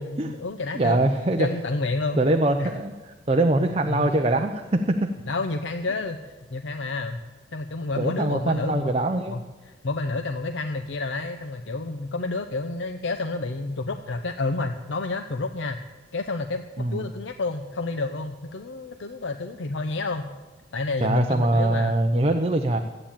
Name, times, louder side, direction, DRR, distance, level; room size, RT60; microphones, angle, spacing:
voice 1, 0.0-1.0 1.4-2.2 2.6-2.7 3.8-4.1 5.3-7.2 7.5-8.9 9.3-15.8 16.1-20.3 20.7-22.0, left 3 dB, 90° left, 7 dB, 0.7 m, -29 dB
voice 2, 0.7-1.5 2.1-2.9 3.3-5.1 8.0-9.4 16.8-17.0 21.0-22.8, right 2 dB, 30° right, 5 dB, 0.6 m, -23 dB
13.5 x 8.8 x 8.8 m, 1.2 s
head